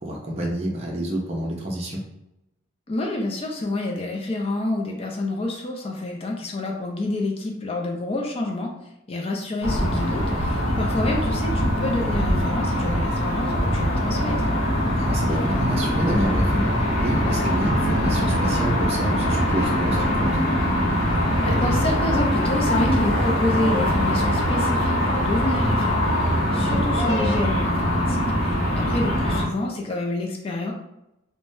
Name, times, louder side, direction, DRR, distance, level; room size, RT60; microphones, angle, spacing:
voice 1, 0.0-2.0 15.0-20.3 26.5-26.8, right 1 dB, 30° right, -3 dB, 0.5 m, -28 dB
voice 2, 2.9-8.7 9.1-14.5 21.4-26.1 26.5-30.7, left 2 dB, 30° left, 1 dB, 0.4 m, -28 dB
sound 1, 9.6-29.4, equal, 80° left, 0.7 m, -22 dB
3.3 x 2.1 x 2.6 m, 0.89 s
head